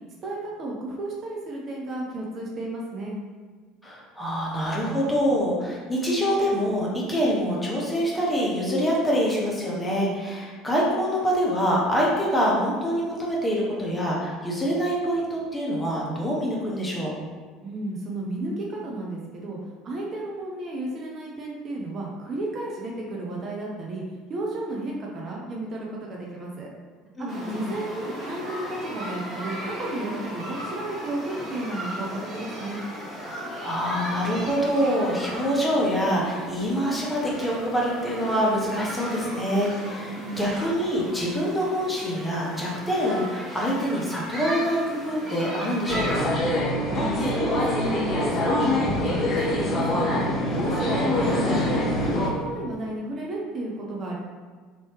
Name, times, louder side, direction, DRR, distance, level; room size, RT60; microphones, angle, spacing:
voice 1, 0.2-3.2 17.6-19.6 19.8-24.0 24.3-26.7 27.3-32.8 40.1-40.5 46.9-50.3 50.5-51.7 52.0-54.2, right 2 dB, 40° right, -2 dB, 0.5 m, -33 dB
voice 2, 3.8-17.2 27.2-27.6 33.6-46.3, equal, 10° left, -4 dB, 0.9 m, -25 dB
sound 1, 27.3-46.3, equal, 20° right, 1.3 m, -36 dB
sound 2, 45.9-52.3, left 1 dB, 35° left, 0.7 m, -24 dB
3.0 x 2.9 x 3.0 m, 1.5 s
figure-of-eight pair, 65°, 0 cm